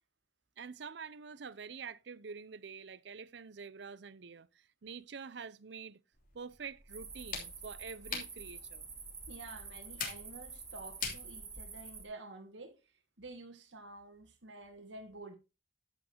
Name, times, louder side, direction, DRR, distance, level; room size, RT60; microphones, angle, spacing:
voice 1, 0.6-6.0 6.3-8.9, right 5 dB, 70° right, 0.6 m, -47 dB
sound 1, 6.1-12.0, left 5 dB, 45° left, 3.1 m, -46 dB
sound 2, 6.9-12.0, right 4 dB, 15° right, 2.0 m, -48 dB
voice 2, 9.3-12.8 13.2-15.3, right 2 dB, 85° right, 1.9 m, -50 dB
11.0 x 8.6 x 2.9 m
head